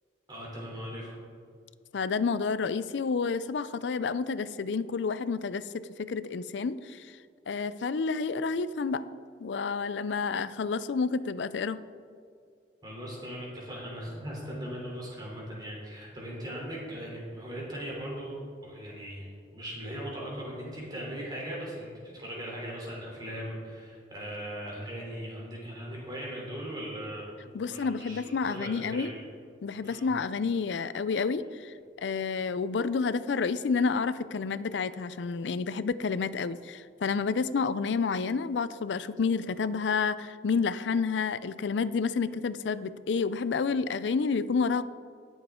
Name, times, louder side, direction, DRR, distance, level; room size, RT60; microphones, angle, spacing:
voice 1, 0.3-1.1 12.8-27.2 27.6-29.2 29.8-30.0, equal, 25° right, -4 dB, 3.3 m, -39 dB
voice 2, 1.9-7.2 7.5-9.0 9.4-11.8 27.5-29.1 29.6-44.8, left 5 dB, 85° left, 15 dB, 0.4 m, -29 dB
19.0 x 7.1 x 3.7 m, 2.2 s
head